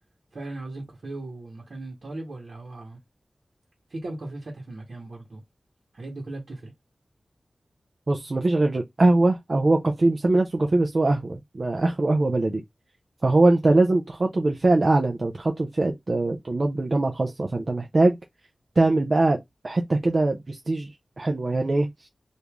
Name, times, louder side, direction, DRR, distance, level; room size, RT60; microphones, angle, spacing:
voice 1, 0.3-3.0 3.9-5.4 5.9-6.7, right 2 dB, 70° right, 1.2 m, -37 dB
voice 2, 8.1-12.6 13.2-18.2 18.8-20.9 21.2-22.1, right 2 dB, 45° right, 0.5 m, -22 dB
3.0 x 2.6 x 3.5 m
wide cardioid pair, 80°, 0 cm